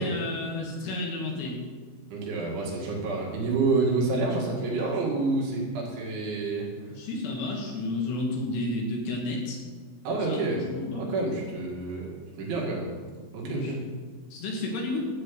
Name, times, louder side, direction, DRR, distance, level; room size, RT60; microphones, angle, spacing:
voice 1, 0.0-1.6 6.9-9.6 10.2-11.1 13.5-13.7 14.3-15.1, left 2 dB, 70° left, 0 dB, 3.4 m, -31 dB
voice 2, 2.1-6.7 10.0-10.6 10.9-12.1 12.4-12.9 13.3-13.8, right 3 dB, 75° right, -3 dB, 4.4 m, -28 dB
12.5 x 4.4 x 8.2 m, 1.5 s
omnidirectional pair, 5.6 m